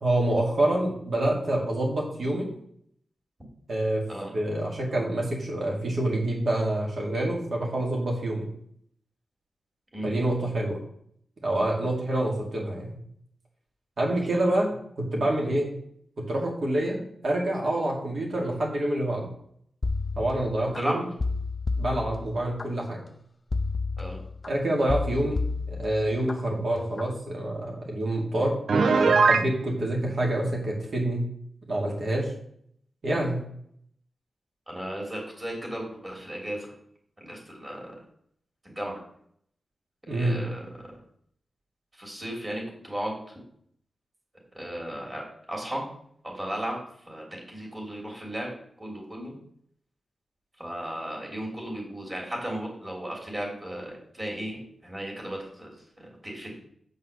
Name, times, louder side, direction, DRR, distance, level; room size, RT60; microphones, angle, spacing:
voice 1, 0.0-2.5 3.7-4.0 4.3-8.5 10.0-10.8 11.4-13.0 14.0-15.7 16.3-19.3 20.2-21.1 21.8-23.0 24.5-25.4 25.7-28.5 28.8-31.3 31.7-32.3 33.0-33.4 40.1-40.4, right 1 dB, 50° right, -2 dB, 2.9 m, -27 dB
sound 1, 19.8-20.8 21.2-22.7 23.5-24.5 24.9-26.3 26.8-27.1, left 3 dB, 30° left, 0.5 m, -30 dB
voice 2, 20.6-21.0 24.0-24.2 34.7-36.7 37.2-37.9 38.6-39.0 40.1-40.9 41.9-43.3 44.5-45.8 46.2-46.8 47.1-48.5 48.8-49.4 50.6-56.5, right 1 dB, 20° right, -2 dB, 3.2 m, -35 dB
Piano, 28.7-29.5, right 4 dB, 65° right, 0.6 m, -19 dB
7.9 x 5.6 x 6.6 m, 0.66 s
wide cardioid pair, 165°, 0 cm